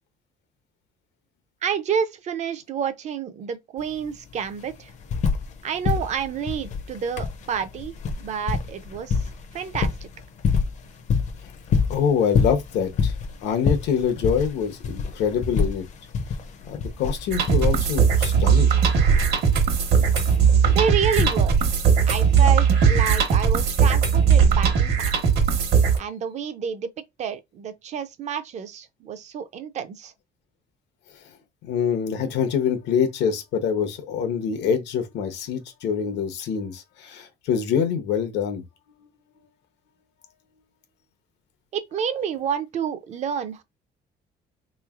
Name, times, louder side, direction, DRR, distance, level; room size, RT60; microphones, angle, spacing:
voice 1, 1.6-4.9 5.6-9.9 20.7-21.7 22.1-25.2 26.0-26.9 27.2-30.1 41.7-43.6, right 7 dB, 40° right, 0.4 m, -29 dB
sound 1, 3.8-3.9 4.1-5.6 5.8-21.8 22.9-23.0, left 5 dB, 40° left, 0.5 m, -27 dB
voice 2, 11.9-13.1 13.4-15.8 16.6-18.8 31.2-31.3 31.6-38.6 39.0-39.1, left 7 dB, 85° left, 0.8 m, -25 dB
sound 2, 17.3-26.0, right 7 dB, 65° right, 1.0 m, -19 dB
3.6 x 3.1 x 2.4 m
cardioid pair, 165°, 18 cm